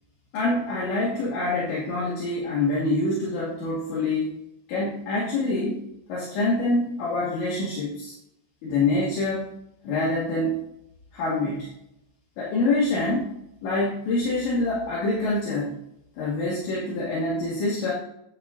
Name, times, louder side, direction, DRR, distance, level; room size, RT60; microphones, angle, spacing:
voice 1, 0.3-4.4 4.7-5.8 6.1-8.1 8.6-9.5 9.8-10.6 11.1-11.7 12.4-13.3 13.6-15.8 16.2-17.9, left 2 dB, 65° left, -7 dB, 4.5 m, -25 dB
10.5 x 10.5 x 2.7 m, 0.80 s
omnidirectional pair, 5.8 m